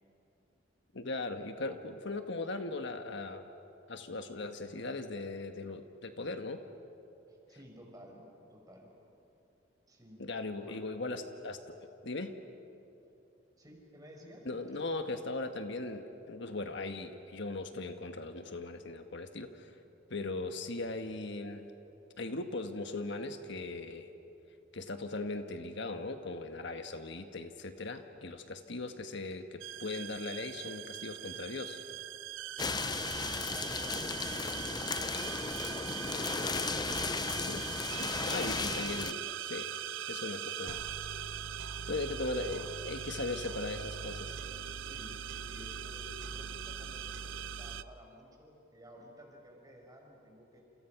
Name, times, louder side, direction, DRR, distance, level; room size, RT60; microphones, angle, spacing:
voice 1, 0.9-3.5 3.9-6.6 10.2-11.7 12.0-12.3 14.4-19.8 20.1-21.7 22.2-24.1 24.7-31.8 37.5-37.7 38.0-39.7 40.1-40.8 41.9-44.4, left 2 dB, 65° left, 7 dB, 1.4 m, -39 dB
voice 2, 7.3-8.9 9.9-10.3 10.6-10.9 13.6-14.5 32.5-37.5 41.7-42.0 44.8-50.6, equal, 20° right, 1 dB, 5.2 m, -54 dB
sound 1, 29.6-47.8, right 9 dB, 70° right, 0.7 m, -41 dB
sound 2, 32.6-39.1, left 4 dB, 20° left, 0.5 m, -35 dB
30.0 x 28.5 x 5.9 m, 2.8 s
head